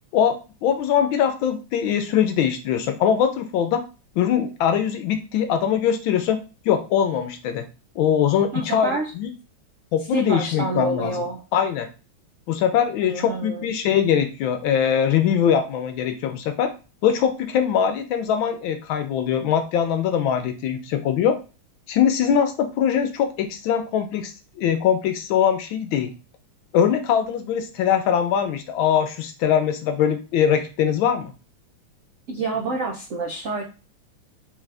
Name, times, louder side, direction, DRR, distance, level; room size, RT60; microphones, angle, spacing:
voice 1, 0.1-3.8 4.2-6.4 6.6-7.7 8.0-8.9 9.2-9.3 9.9-11.1 11.5-11.9 12.5-16.7 17.0-21.4 21.9-26.1 26.7-31.3, left 8 dB, 75° left, 7 dB, 1.3 m, -22 dB
voice 2, 8.5-9.1 10.1-11.4 13.0-13.7 32.3-33.6, right 2 dB, 85° right, 0 dB, 0.6 m, -27 dB
4.1 x 3.6 x 3.3 m, 0.33 s
omnidirectional pair, 2.3 m